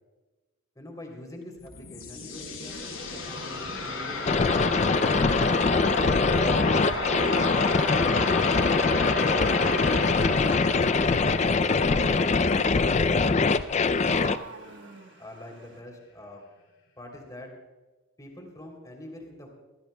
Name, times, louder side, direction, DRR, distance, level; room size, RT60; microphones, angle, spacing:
voice 1, 0.7-7.2 9.3-10.6 11.4-12.6 12.9-14.3 15.2-16.4 17.0-17.5 18.2-19.5, left 1 dB, 15° left, 1 dB, 3.1 m, -45 dB
sound 1, 1.4-14.3, left 3 dB, 80° left, 5.0 m, -33 dB
sound 2, 4.2-14.4, left 4 dB, 30° left, 0.4 m, -23 dB
Wild animals, 4.6-15.8, right 3 dB, 60° right, 1.3 m, -43 dB
23.0 x 16.0 x 2.2 m, 1.2 s
head